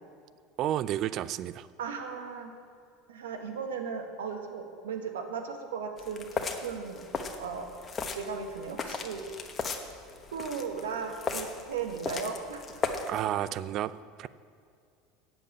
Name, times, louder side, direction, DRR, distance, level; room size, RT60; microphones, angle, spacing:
voice 1, 0.6-1.7 13.0-14.3, right 12 dB, 50° right, 16 dB, 0.4 m, -31 dB
voice 2, 1.8-2.5 3.1-7.0 7.4-7.7 8.1-9.2 10.3-12.6, right 6 dB, 90° right, 4 dB, 1.4 m, -36 dB
sound 1, 6.0-13.2, left 4 dB, 30° left, 1.1 m, -37 dB
8.5 x 7.3 x 8.4 m, 2.3 s
hypercardioid pair, 90°, 0 cm